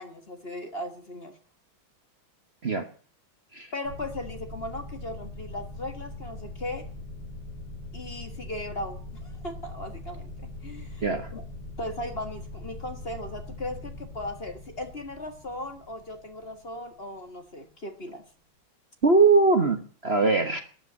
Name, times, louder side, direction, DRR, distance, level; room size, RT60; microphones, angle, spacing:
voice 1, 0.0-1.4 3.7-6.9 7.9-11.0 11.3-11.4 11.8-18.2, left 1 dB, 30° left, 7 dB, 1.7 m, -37 dB
sound 1, 3.8-17.1, left 2 dB, 65° left, 5.8 m, -41 dB
voice 2, 19.0-20.6, right 3 dB, 35° right, 7 dB, 1.4 m, -21 dB
13.0 x 9.1 x 9.9 m, 0.43 s
omnidirectional pair, 2.2 m